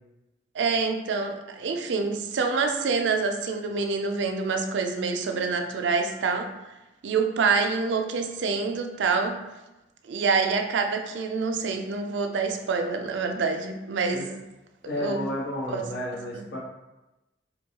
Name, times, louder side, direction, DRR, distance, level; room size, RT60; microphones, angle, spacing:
voice 1, 0.5-6.5 7.0-9.4 10.0-14.4 15.0-15.3 15.7-15.8 16.3-16.5, right 4 dB, 85° right, 5 dB, 0.4 m, -26 dB
voice 2, 14.8-16.6, left 1 dB, 75° left, -5 dB, 1.1 m, -32 dB
3.9 x 2.2 x 2.8 m, 1.0 s
head